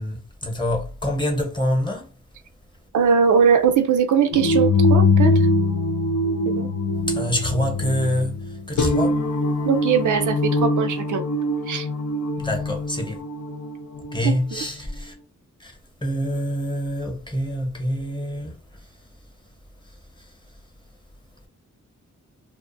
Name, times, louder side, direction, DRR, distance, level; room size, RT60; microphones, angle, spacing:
voice 1, 0.0-2.1 7.1-9.2 12.4-13.2 14.1-15.1 15.6-15.7 16.0-18.9 19.8-20.3, equal, 15° left, 0.8 m, -26 dB
voice 2, 2.9-5.4 6.5-6.7 9.7-11.2 11.7-11.9, right 7 dB, 75° right, 0.5 m, -20 dB
sound 1, 4.3-14.2, left 2 dB, 70° left, 0.7 m, -22 dB
2.4 x 2.3 x 2.5 m
wide cardioid pair, 85°, 31 cm